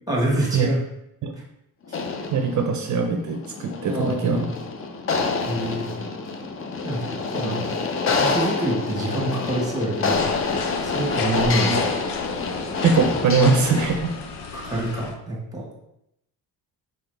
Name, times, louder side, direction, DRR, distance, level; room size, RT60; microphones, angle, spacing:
voice 1, 0.1-0.8 3.8-4.5 5.5-5.9 6.8-10.2 10.8-11.9 14.5-15.7, right 1 dB, 10° right, -2 dB, 1.3 m, -26 dB
sound 1, 1.9-14.2, left 4 dB, 35° left, 0.4 m, -27 dB
voice 2, 2.3-4.5 11.7-11.9 12.8-14.1, right 4 dB, 50° right, 4 dB, 0.5 m, -21 dB
sound 2, 10.1-15.2, left 5 dB, 90° left, 0.6 m, -33 dB
4.1 x 3.8 x 3.3 m, 0.81 s
cardioid pair, 135°, 39 cm